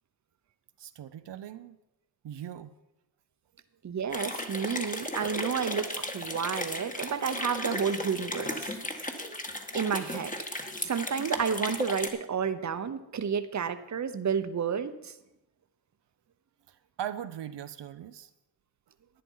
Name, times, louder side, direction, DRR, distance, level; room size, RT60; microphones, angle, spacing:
voice 1, 0.8-1.8 2.2-2.7 16.7-18.3, right 10 dB, 80° right, 9 dB, 0.7 m, -40 dB
voice 2, 3.8-8.7 9.7-10.3 10.8-15.1, right 7 dB, 45° right, 10 dB, 0.9 m, -31 dB
sound 1, 4.1-12.1, left 1 dB, 20° left, 1.6 m, -35 dB
11.0 x 9.9 x 5.6 m, 0.90 s
cardioid pair, 85°, 41 cm